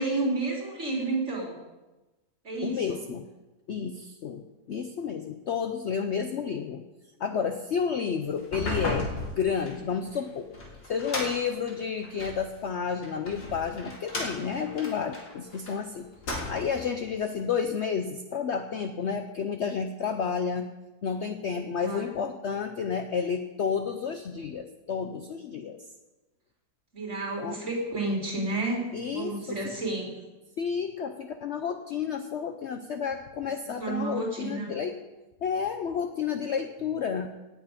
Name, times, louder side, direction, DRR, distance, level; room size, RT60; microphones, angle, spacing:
voice 1, 0.0-1.6 2.4-3.0 21.5-22.2 26.9-30.1 33.8-34.7, right 2 dB, 45° right, -3 dB, 3.6 m, -31 dB
voice 2, 2.6-3.3 3.7-6.8 7.2-9.1 9.4-10.5 10.8-16.1 16.5-20.7 21.0-25.8 27.4-27.6 28.9-29.4 30.6-34.9 35.4-37.3, left 6 dB, 60° left, 7 dB, 0.8 m, -31 dB
sound 1, 8.4-12.4 13.0-15.7 16.1-16.9, left 2 dB, 85° left, 2.9 m, -35 dB
17.0 x 8.2 x 5.1 m, 1.1 s
omnidirectional pair, 1.7 m